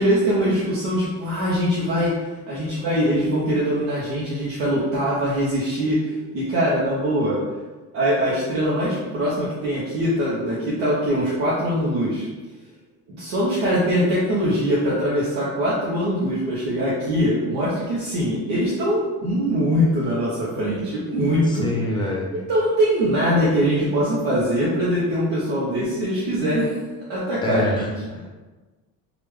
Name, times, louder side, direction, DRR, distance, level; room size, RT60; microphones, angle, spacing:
voice 1, 0.0-2.1 2.5-7.4 7.9-12.3 13.1-21.7 22.5-26.8 27.1-27.9, equal, 90° right, -7 dB, 0.9 m, -22 dB
voice 2, 21.5-22.3 27.4-28.3, left 1 dB, 15° left, -1 dB, 0.6 m, -26 dB
3.3 x 2.4 x 3.1 m, 1.3 s
cardioid pair, 115°, 35 cm